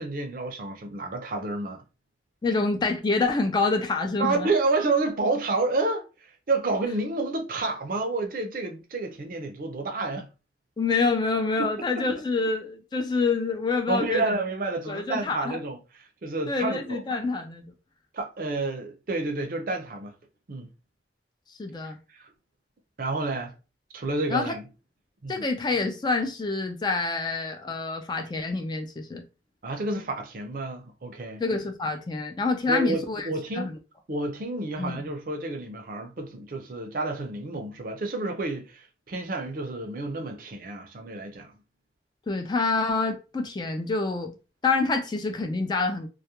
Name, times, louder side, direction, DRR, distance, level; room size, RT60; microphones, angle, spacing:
voice 1, 0.0-1.8 4.2-10.3 11.6-11.7 13.9-17.0 18.1-20.1 20.5-20.7 21.8-22.3 23.0-23.5 23.9-24.7 25.2-25.4 29.6-31.4 32.7-33.7 34.1-41.5, right 3 dB, 50° right, 0.5 m, -30 dB
voice 2, 2.4-4.5 10.8-14.3 14.9-15.6 16.5-17.7 21.6-22.0 24.3-24.5 25.3-29.2 31.4-33.3 33.5-33.7 34.8-35.1 42.3-44.3 44.6-46.1, left 3 dB, 25° left, 0.3 m, -27 dB
2.3 x 2.1 x 2.8 m
head